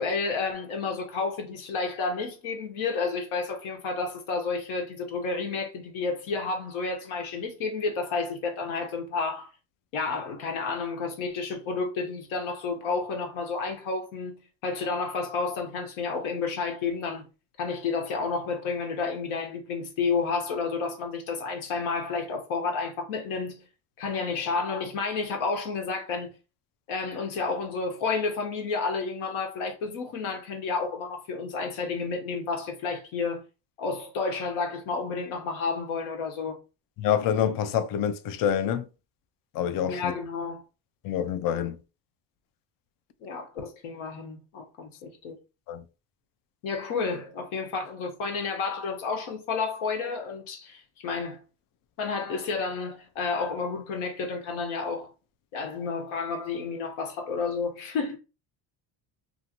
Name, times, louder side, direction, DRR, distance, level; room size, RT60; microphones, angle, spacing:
voice 1, 0.0-9.5 9.9-14.3 14.6-17.3 17.6-23.6 24.0-26.3 26.9-33.4 33.8-36.6 39.9-40.6 43.2-45.4 46.6-51.4 52.0-55.1 55.5-58.2, left 4 dB, 75° left, 1.1 m, -31 dB
voice 2, 37.0-38.9 39.5-40.1 41.0-41.8 45.7-45.8, left 9 dB, 45° left, 0.4 m, -26 dB
2.7 x 2.6 x 2.8 m
cardioid pair, 105°, 48 cm